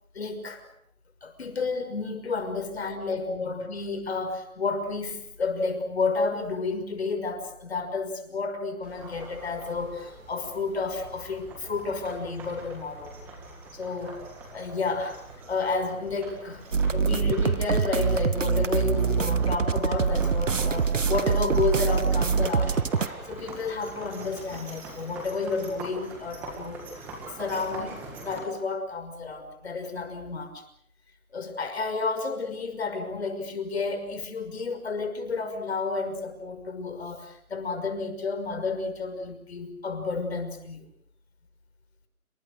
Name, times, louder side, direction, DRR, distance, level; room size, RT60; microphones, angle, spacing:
voice 1, 0.1-0.7 1.2-13.1 13.7-14.2 14.5-15.2 15.5-16.6 16.9-22.8 23.3-27.0 27.3-30.6 31.3-40.8, left 4 dB, 45° left, 7 dB, 5.9 m, -31 dB
sound 1, 8.8-28.4, right 3 dB, 5° right, 1.8 m, -43 dB
sound 2, 16.7-23.1, right 5 dB, 60° right, 1.3 m, -24 dB
28.0 x 25.5 x 6.6 m, 0.65 s
hypercardioid pair, 170°, 43 cm